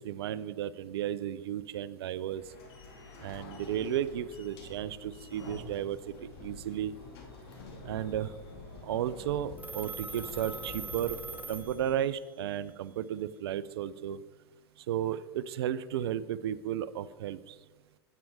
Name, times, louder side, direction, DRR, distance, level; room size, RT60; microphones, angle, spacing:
voice 1, 0.0-2.4 3.2-6.9 7.8-8.3 8.8-11.2 11.5-14.2 14.8-17.6, right 10 dB, 70° right, 16 dB, 0.5 m, -34 dB
sound 1, 2.3-11.8, left 3 dB, 65° left, 2.5 m, -47 dB
Telephone, 9.6-12.3, right 4 dB, 10° right, 0.8 m, -42 dB
9.1 x 8.6 x 4.8 m, 1.3 s
hypercardioid pair, 90°, 14 cm